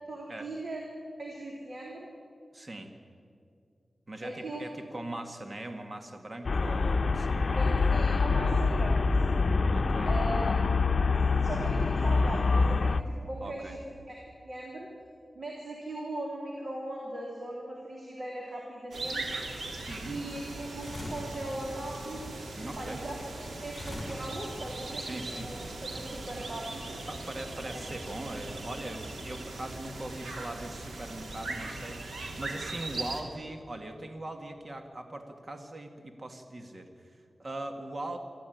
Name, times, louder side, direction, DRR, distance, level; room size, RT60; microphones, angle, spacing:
voice 1, 0.1-0.8 1.2-2.1 4.2-4.6 7.6-9.5 10.1-10.8 11.3-13.8 14.1-14.2 14.4-14.9 15.4-19.5 20.0-22.4 22.8-23.1 23.6-25.0 25.3-25.6 25.9-27.0, right 1 dB, 60° right, -2 dB, 3.7 m, -39 dB
voice 2, 2.5-2.9 4.1-7.6 9.7-10.2 13.4-13.8 19.8-20.2 22.5-23.0 25.0-25.5 27.1-38.2, right 1 dB, 40° right, 5 dB, 1.9 m, -41 dB
Traffic noise roadway noise, 6.4-13.0, left 4 dB, 60° left, 0.8 m, -25 dB
sound 1, 18.9-33.2, right 2 dB, 85° right, 2.8 m, -39 dB
sound 2, 20.8-21.4 23.7-24.7, left 1 dB, 30° left, 7.2 m, -40 dB
24.5 x 14.5 x 9.3 m, 2.4 s
wide cardioid pair, 80°, 0 cm